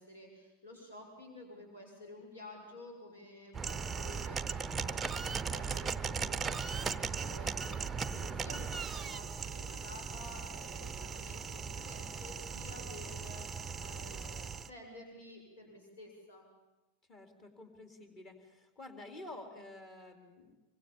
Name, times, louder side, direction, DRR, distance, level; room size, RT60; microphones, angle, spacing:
voice 1, 0.0-16.5, left 1 dB, 65° left, 2 dB, 6.5 m, -52 dB
sound 1, 3.5-14.7, right 5 dB, 15° right, 0.8 m, -38 dB
voice 2, 17.1-20.5, left 2 dB, 30° left, 5 dB, 4.3 m, -50 dB
26.0 x 24.0 x 7.4 m, 1.0 s
figure-of-eight pair, 90°, 0 cm